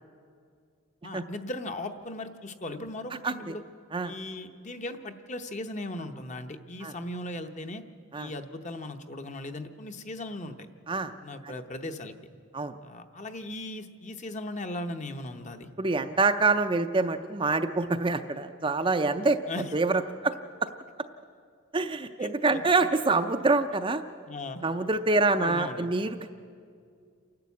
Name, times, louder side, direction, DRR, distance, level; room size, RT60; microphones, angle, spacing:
voice 1, 1.0-3.6 4.0-7.8 8.1-10.7 11.0-12.1 12.8-15.7 19.5-19.7 22.2-22.6 24.3-24.6 25.4-25.9, left 1 dB, 35° left, 7 dB, 0.9 m, -38 dB
voice 2, 3.2-3.5 3.9-4.1 6.8-6.9 8.1-8.3 10.9-11.1 12.5-12.7 15.8-19.4 19.7-20.3 21.7-24.0 24.6-26.3, right 3 dB, 25° right, 7 dB, 0.5 m, -26 dB
28.5 x 11.5 x 8.3 m, 2.3 s
head